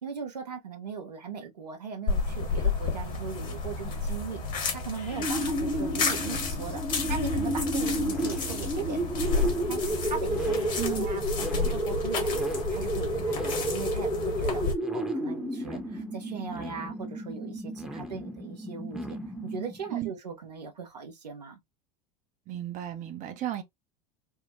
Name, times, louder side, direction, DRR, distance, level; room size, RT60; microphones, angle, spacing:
voice 1, 0.0-12.4 12.7-14.6 14.9-19.2 19.4-21.6, right 6 dB, 80° right, 0.9 m, -39 dB
sound 1, 2.1-14.7, left 4 dB, 40° left, 1.2 m, -31 dB
sound 2, 5.1-20.0, right 1 dB, ahead, 0.8 m, -32 dB
voice 2, 22.5-23.6, right 13 dB, 40° right, 0.6 m, -34 dB
3.5 x 2.1 x 2.5 m
figure-of-eight pair, 80°, 21 cm